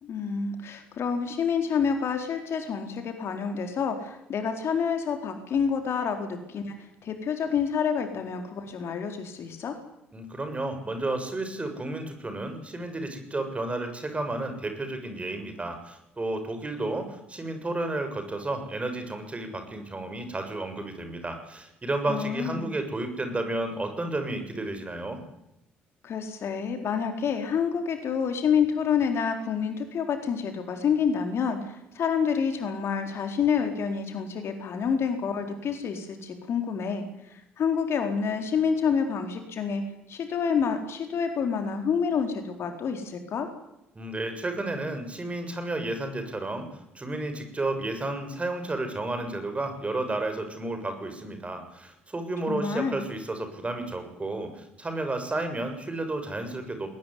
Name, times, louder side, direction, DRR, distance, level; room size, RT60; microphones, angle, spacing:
voice 1, 0.0-9.7 22.1-22.7 26.0-39.8 40.1-43.5 52.5-53.0, left 6 dB, 50° left, 6 dB, 4.2 m, -28 dB
voice 2, 10.1-25.2 44.0-56.9, right 2 dB, 20° right, 7 dB, 7.0 m, -32 dB
21.5 x 19.5 x 9.7 m, 0.88 s
figure-of-eight pair, 45°, 6 cm